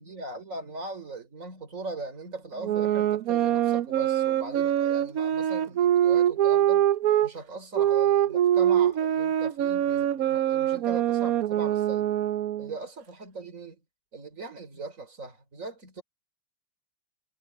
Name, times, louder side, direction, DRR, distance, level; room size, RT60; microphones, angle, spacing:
voice 1, 0.0-6.9 7.2-12.1 12.6-13.8 14.1-16.0, right 3 dB, 35° right, 4.6 m, -40 dB
sound 1, 2.6-7.3 7.7-12.7, right 11 dB, 75° right, 0.8 m, -24 dB
omnidirectional pair, 2.3 m